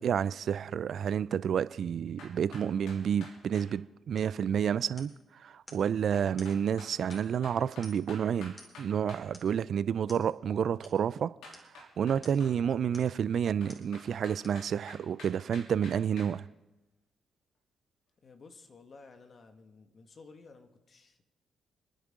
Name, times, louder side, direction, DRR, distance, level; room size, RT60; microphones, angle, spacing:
voice 1, 0.0-11.3 12.0-16.5, right 8 dB, 60° right, 0.4 m, -30 dB
sound 1, 2.2-3.7 6.1-9.3 11.4-12.6 13.6-16.3, left 2 dB, 75° left, 3.1 m, -49 dB
sound 2, 4.2-4.4 5.0-5.3 5.7-5.9 6.4-6.6 7.1-7.4 7.8-8.2 8.6-8.9 9.3-9.6 10.1-10.3 10.8-11.0 11.5-11.7 12.2-12.5 12.9-13.2 13.7-13.9 14.4-14.7 15.2-15.3, left 1 dB, 30° left, 4.5 m, -53 dB
voice 2, 18.2-21.2, left 4 dB, 50° left, 1.9 m, -54 dB
29.0 x 10.0 x 3.7 m
hypercardioid pair, 45°, 0 cm